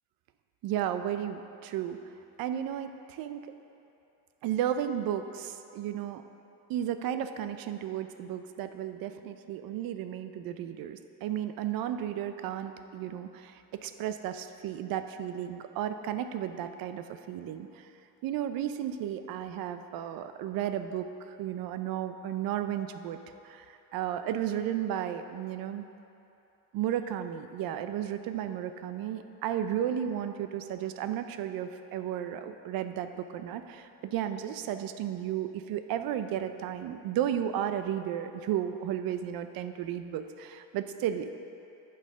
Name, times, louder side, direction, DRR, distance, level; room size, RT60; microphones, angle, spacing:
voice 1, 0.6-2.0 2.4-3.5 4.4-6.2 6.7-17.9 18.2-25.8 26.7-41.4, right 10 dB, 75° right, 9 dB, 0.6 m, -34 dB
10.0 x 5.5 x 5.1 m, 2.8 s
cardioid pair, 105°, 35 cm